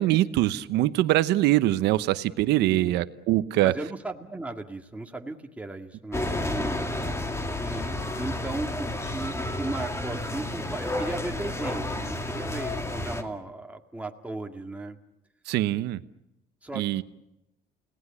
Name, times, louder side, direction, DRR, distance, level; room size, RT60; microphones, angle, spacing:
voice 1, 0.0-3.7 15.5-16.0 16.7-17.0, right 15 dB, 85° right, 13 dB, 1.0 m, -23 dB
voice 2, 2.7-3.0 3.6-6.7 7.6-15.0 16.6-17.0, right 2 dB, 10° right, 3 dB, 2.0 m, -36 dB
sound 1, 6.1-13.2, left 1 dB, 15° left, 2.3 m, -31 dB
30.0 x 18.5 x 8.4 m, 0.92 s
cardioid pair, 110°, 17 cm